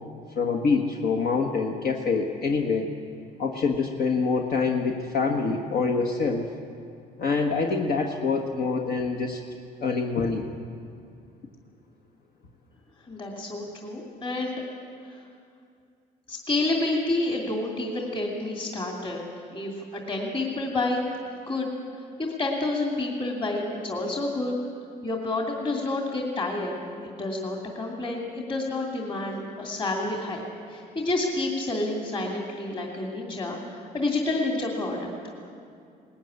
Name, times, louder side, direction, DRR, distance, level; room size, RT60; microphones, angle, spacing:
voice 1, 0.4-3.0 3.4-6.5 7.2-9.4 9.8-10.4, left 4 dB, 60° left, 1 dB, 1.5 m, -25 dB
voice 2, 13.0-14.6 15.1-15.2 16.3-19.2 19.5-21.1 21.5-21.7 22.2-24.5 25.0-26.8 27.0-35.1, left 2 dB, 30° left, -1 dB, 2.8 m, -29 dB
19.0 x 15.0 x 9.7 m, 2.4 s
cardioid pair, 110°, 17 cm